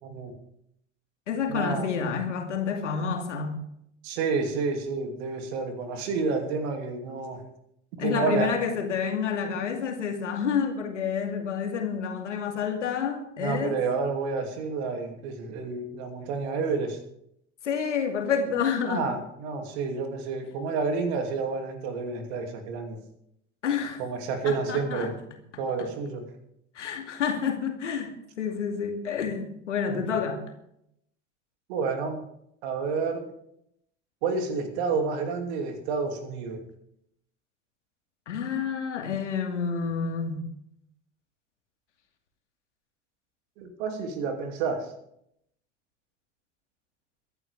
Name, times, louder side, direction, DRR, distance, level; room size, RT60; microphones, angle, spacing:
voice 1, 0.0-0.3 1.5-1.9 4.0-7.4 8.0-8.5 13.4-17.0 18.9-23.0 24.0-25.1 25.6-26.3 29.9-30.1 31.7-32.2 32.6-33.3 34.2-36.6 43.6-44.9, right 4 dB, 55° right, 5 dB, 2.8 m, -29 dB
voice 2, 1.3-3.6 8.0-13.8 17.6-19.1 23.6-24.0 24.4-25.1 26.7-30.4 38.3-40.4, left 6 dB, 70° left, 4 dB, 2.5 m, -29 dB
23.5 x 11.0 x 3.5 m, 0.74 s
figure-of-eight pair, 70°, 37 cm